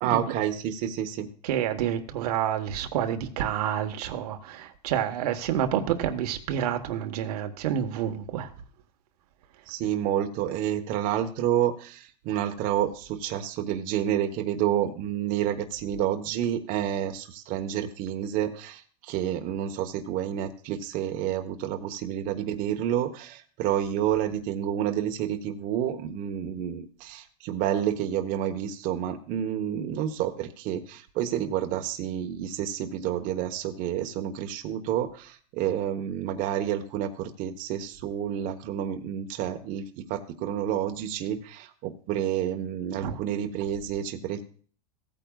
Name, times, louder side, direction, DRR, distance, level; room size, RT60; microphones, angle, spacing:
voice 1, 0.0-1.3 9.7-44.4, right 10 dB, 40° right, 1.2 m, -29 dB
voice 2, 1.4-8.5 43.0-43.2, right 10 dB, 70° right, 1.3 m, -28 dB
16.0 x 8.9 x 2.4 m
supercardioid pair, 140°, 21 cm